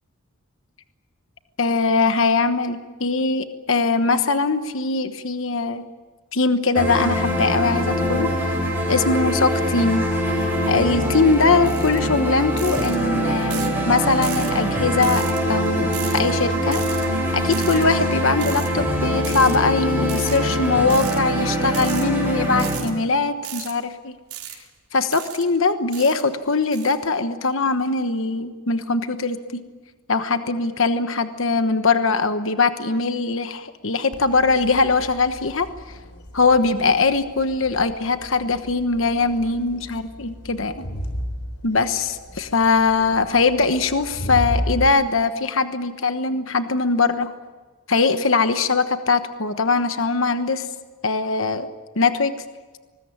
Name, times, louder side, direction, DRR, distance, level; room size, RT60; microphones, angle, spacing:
voice 1, 1.6-5.9 6.3-8.5 8.9-10.0 10.7-16.8 17.3-24.2 24.9-29.6 30.1-35.7 36.3-40.8 41.6-47.3 47.9-50.7 51.0-51.7 52.0-52.3, left 4 dB, 60° left, 9 dB, 1.2 m, -21 dB
sound 1, 6.8-22.8, equal, 10° right, 7.3 m, -23 dB
sound 2, 11.7-12.0 12.6-13.0 13.5-13.8 14.2-14.5 15.0-15.4 15.9-16.2 16.7-17.1 17.5-17.8 18.4-18.7 19.2-19.6 20.1-20.4 20.9-21.2 21.7-22.0 22.6-22.9 23.4-23.7 24.3-24.6 25.1-25.4 25.9-26.2 26.7-26.9, right 12 dB, 85° right, 4.2 m, -35 dB
Crowd, 34.1-44.9, equal, 85° left, 3.8 m, -34 dB
25.0 x 20.5 x 8.7 m, 1.3 s
head